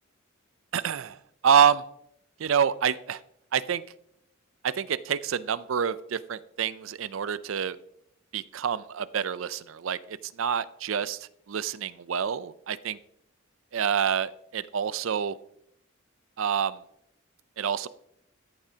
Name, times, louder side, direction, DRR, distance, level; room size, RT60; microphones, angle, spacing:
voice 1, 0.7-1.2 1.4-1.8 2.4-3.2 3.5-3.8 4.6-7.8 8.3-13.0 13.7-15.4 16.4-16.8 17.6-17.9, right 7 dB, 75° right, 16 dB, 0.4 m, -27 dB
14.0 x 10.5 x 2.8 m, 0.73 s
head